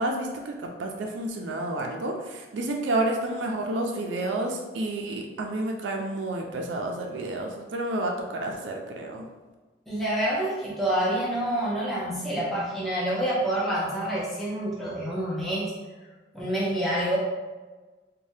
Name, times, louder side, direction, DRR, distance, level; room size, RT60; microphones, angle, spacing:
voice 1, 0.0-9.2, right 1 dB, 90° right, 1 dB, 0.4 m, -30 dB
voice 2, 9.9-15.7 16.3-17.2, right 1 dB, ahead, -9 dB, 0.6 m, -27 dB
3.3 x 2.2 x 2.7 m, 1.3 s
head